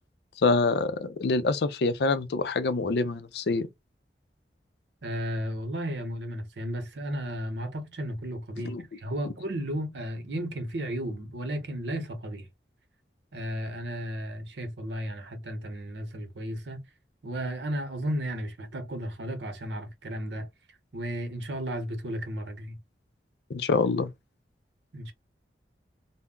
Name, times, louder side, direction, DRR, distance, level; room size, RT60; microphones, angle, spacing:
voice 1, 0.4-3.7 8.7-8.8 23.5-24.1, left 3 dB, 70° left, 0.4 m, -26 dB
voice 2, 5.0-12.5 13.3-16.9 17.2-20.5 20.9-22.8 24.9-25.1, equal, 80° right, 0.8 m, -34 dB
2.2 x 2.0 x 3.6 m
head